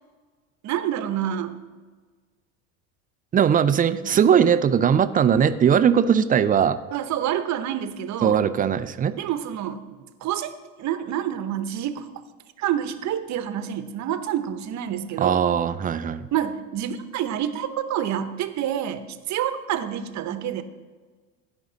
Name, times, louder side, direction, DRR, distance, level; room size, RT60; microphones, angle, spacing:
voice 1, 0.6-1.6 4.1-4.2 6.9-8.4 9.1-9.8 10.2-10.5 10.8-12.0 12.6-15.4 16.3-20.6, right 10 dB, 45° right, 11 dB, 0.9 m, -28 dB
voice 2, 3.3-6.8 8.2-9.1 15.2-16.3, right 8 dB, 20° right, 12 dB, 0.4 m, -19 dB
16.0 x 5.3 x 3.9 m, 1.4 s
supercardioid pair, 100°, 38 cm